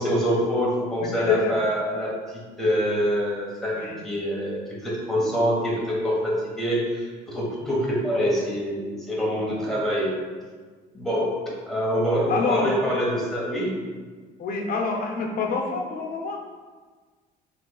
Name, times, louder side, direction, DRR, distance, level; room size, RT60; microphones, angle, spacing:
voice 1, 0.0-10.1 10.9-13.8, equal, ahead, -6 dB, 1.3 m, -25 dB
voice 2, 1.0-1.6 3.7-4.0 5.2-5.3 7.6-7.8 9.5-9.7 12.3-12.7 14.4-16.4, left 4 dB, 60° left, 0 dB, 0.8 m, -27 dB
5.6 x 3.2 x 2.4 m, 1.5 s
cardioid pair, 110°, 17 cm